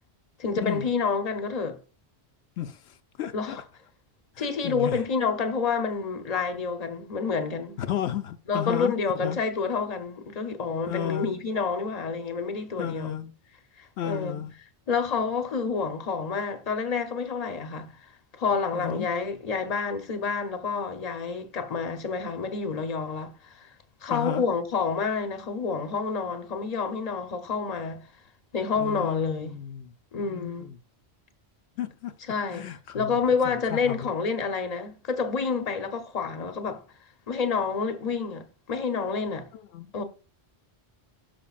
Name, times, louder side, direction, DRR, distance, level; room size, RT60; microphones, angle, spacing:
voice 1, 0.4-1.8 3.3-3.6 4.4-7.8 8.5-13.2 13.8-14.4 14.9-18.0 18.3-23.7 24.0-28.1 28.5-29.6 30.1-30.7 32.3-32.6 32.9-36.8 37.3-39.5 39.9-40.0, left 5 dB, 40° left, 0.9 m, -28 dB
voice 2, 2.6-3.6 4.4-5.0 7.8-9.4 10.9-11.3 12.8-13.3 14.0-14.5 18.7-19.1 24.1-24.4 28.8-30.8 31.8-32.1 32.5-33.2 33.4-34.1 39.5-39.9, left 10 dB, 80° left, 0.8 m, -33 dB
12.5 x 5.2 x 2.4 m
omnidirectional pair, 1.1 m